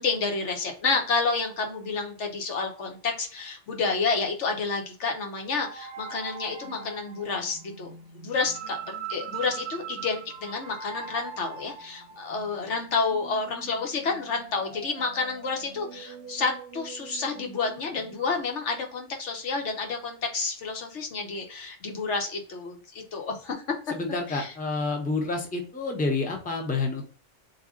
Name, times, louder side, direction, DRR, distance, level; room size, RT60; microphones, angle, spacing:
voice 1, 0.0-8.8 9.1-23.6 24.3-24.5, left 4 dB, 70° left, 3 dB, 1.2 m, -30 dB
sound 1, 5.7-18.4, right 6 dB, 55° right, 0.9 m, -42 dB
voice 2, 23.9-27.1, left 3 dB, 10° left, 1 dB, 0.6 m, -29 dB
3.6 x 2.8 x 3.7 m, 0.41 s
omnidirectional pair, 1.2 m